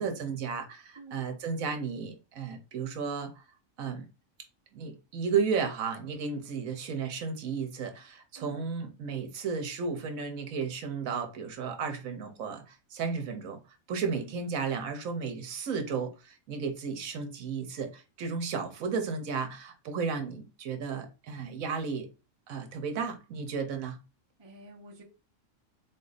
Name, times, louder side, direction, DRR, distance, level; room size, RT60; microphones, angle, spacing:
voice 1, 0.0-3.4 3.8-4.1 4.7-13.6 13.9-22.1 22.5-24.0, right 5 dB, 80° right, 1.2 m, -33 dB
voice 2, 14.0-14.4 24.4-25.0, right 4 dB, 25° right, 0.8 m, -48 dB
3.9 x 2.6 x 3.9 m
omnidirectional pair, 1.4 m